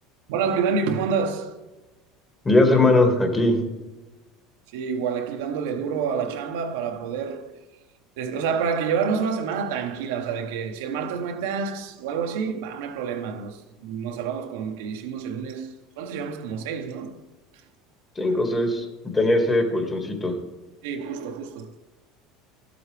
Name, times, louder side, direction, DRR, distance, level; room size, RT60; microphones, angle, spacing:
voice 1, 0.3-1.6 4.7-7.6 8.2-17.2 18.2-18.4 20.8-21.7, right 6 dB, 80° right, 1.0 m, -28 dB
voice 2, 2.5-3.6 18.2-18.9 19.1-20.3, left 2 dB, 20° left, 1.9 m, -20 dB
12.5 x 7.8 x 3.4 m
supercardioid pair, 110°, 0 cm